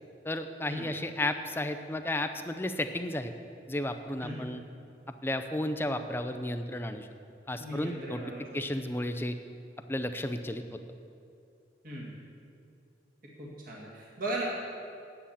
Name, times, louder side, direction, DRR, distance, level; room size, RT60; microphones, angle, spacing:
voice 1, 0.2-3.3 3.7-4.6 5.2-7.1 7.5-8.2 8.5-9.4 9.9-10.6, left 1 dB, 15° left, 8 dB, 0.5 m, -33 dB
voice 2, 7.6-8.4 11.8-12.1 13.4-14.5, right 1 dB, 50° right, -4 dB, 1.8 m, -37 dB
9.8 x 8.7 x 7.1 m, 2.5 s
head